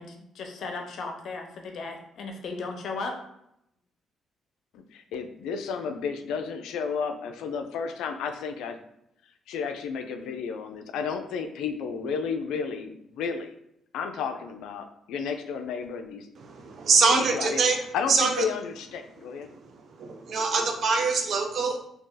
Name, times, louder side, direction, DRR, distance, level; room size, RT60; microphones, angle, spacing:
voice 1, 0.0-3.2, left 3 dB, 65° left, 3 dB, 0.7 m, -36 dB
voice 2, 4.7-8.8 9.5-13.5 13.9-16.3 17.1-17.6 17.9-19.5, left 6 dB, 90° left, 6 dB, 0.4 m, -32 dB
voice 3, 16.4-17.8 18.1-18.4 20.0-21.8, right 4 dB, 60° right, 4 dB, 0.6 m, -24 dB
2.8 x 2.7 x 3.7 m, 0.77 s
cardioid pair, 90°, 0 cm